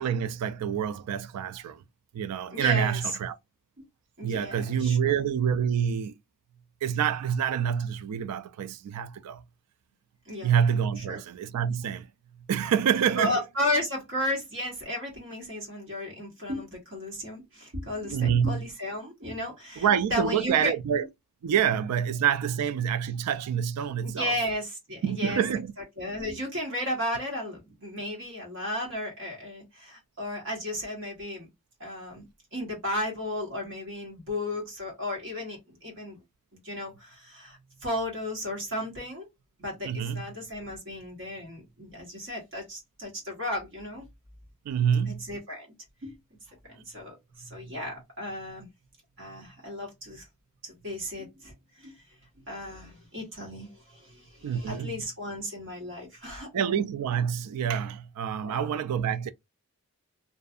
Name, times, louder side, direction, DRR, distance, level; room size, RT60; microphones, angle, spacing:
voice 1, 0.0-1.8 2.1-3.4 4.2-6.1 6.8-9.4 10.4-12.1 12.5-13.4 18.1-18.7 19.8-21.1 21.4-24.3 25.0-25.7 39.8-40.2 44.7-45.2 54.4-55.0 56.5-59.3, right 8 dB, 90° right, 0.3 m, -27 dB
voice 2, 2.5-3.0 3.8-3.9 4.2-5.2 10.3-10.5 11.0-11.2 13.2-20.7 24.0-25.4 26.0-31.5 31.8-32.3 32.5-36.2 36.6-39.3 39.6-44.0 45.1-45.7 46.0-46.1 46.7-48.7 49.2-50.2 50.6-51.9 52.5-56.8 58.4-58.7, left 1 dB, 60° right, 1.1 m, -34 dB
2.6 x 2.3 x 2.4 m
head